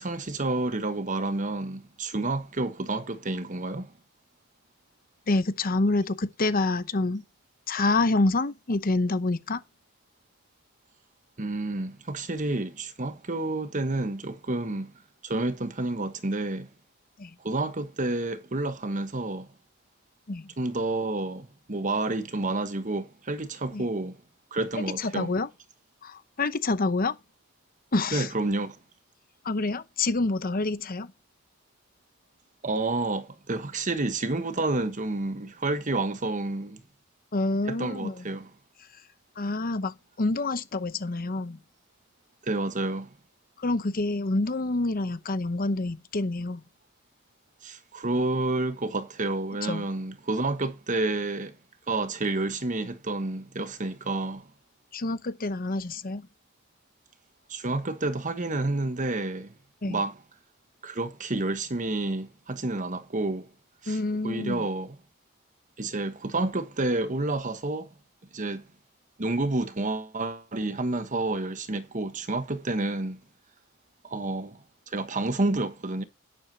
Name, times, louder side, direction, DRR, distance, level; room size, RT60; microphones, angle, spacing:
voice 1, 0.0-3.9 11.4-14.9 15.2-16.7 17.4-19.5 20.6-24.2 24.5-25.3 28.1-28.8 32.6-36.8 37.7-38.5 42.4-43.1 47.6-51.5 51.9-54.5 57.5-59.5 59.8-60.1 60.8-63.5 63.8-64.0 64.2-65.0 65.8-67.9 68.3-68.6 69.2-73.2 74.0-74.6 74.9-76.0, right 2 dB, 35° right, 1.2 m, -29 dB
voice 2, 5.3-7.2 7.7-9.6 17.2-17.3 20.3-20.5 23.7-23.8 24.7-25.5 26.0-27.2 27.9-28.3 29.4-31.1 37.3-38.3 38.9-39.0 39.4-41.6 43.6-46.6 49.6-49.9 54.9-56.3 59.8-60.0 63.9-64.7, left 2 dB, 45° left, 0.8 m, -27 dB
11.5 x 10.5 x 2.9 m
head